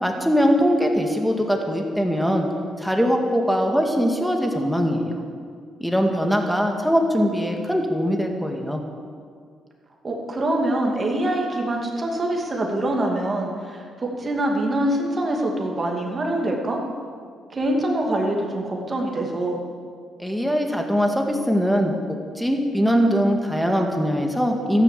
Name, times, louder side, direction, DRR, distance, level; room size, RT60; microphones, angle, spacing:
voice 1, 0.0-2.5 2.8-5.1 5.8-8.8 20.2-22.0 22.4-24.8, equal, ahead, 3 dB, 2.1 m, -21 dB
voice 2, 10.0-16.8 17.5-19.6, right 1 dB, 30° right, 0 dB, 2.5 m, -24 dB
13.5 x 10.0 x 7.6 m, 2.1 s
cardioid pair, 90°, 0 cm